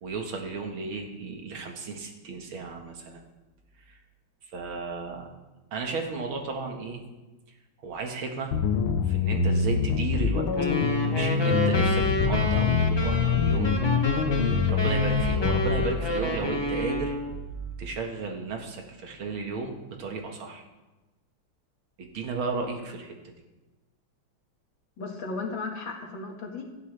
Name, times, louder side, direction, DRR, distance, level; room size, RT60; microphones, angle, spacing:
voice 1, 0.0-3.2 4.5-5.3 5.7-7.0 7.8-8.5 9.1-10.5 11.0-14.2 14.7-17.2 17.8-20.6 22.0-23.1, right 4 dB, 90° right, 3 dB, 2.4 m, -34 dB
sound 1, 8.5-15.9, left 6 dB, 85° left, 1.8 m, -25 dB
sound 2, 10.5-17.4, left 1 dB, 15° left, 1.4 m, -30 dB
sound 3, 12.8-17.9, right 6 dB, 60° right, 1.1 m, -38 dB
voice 2, 25.0-26.6, left 3 dB, 70° left, 1 dB, 2.6 m, -35 dB
17.0 x 12.5 x 3.4 m, 1.1 s
omnidirectional pair, 2.2 m